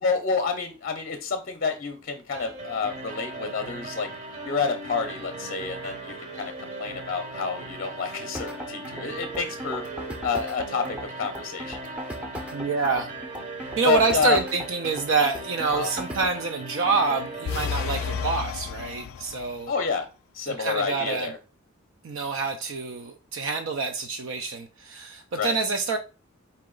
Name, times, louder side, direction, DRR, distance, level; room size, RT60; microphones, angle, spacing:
voice 1, 0.0-4.1 4.4-6.5 6.8-9.8 10.2-11.8 13.8-14.4 15.7-15.9 19.7-20.1 20.3-21.4 25.3-25.6, left 5 dB, 45° left, 0.6 m, -28 dB
sound 1, 2.3-18.3, right 2 dB, 35° right, 0.8 m, -38 dB
sound 2, 8.3-16.4, equal, 5° right, 0.6 m, -37 dB
voice 2, 12.5-13.1 13.8-19.7 20.5-21.3 22.0-26.0, right 4 dB, 65° right, 0.4 m, -27 dB
sound 3, 17.5-19.7, left 7 dB, 90° left, 0.3 m, -31 dB
4.3 x 2.9 x 3.8 m
head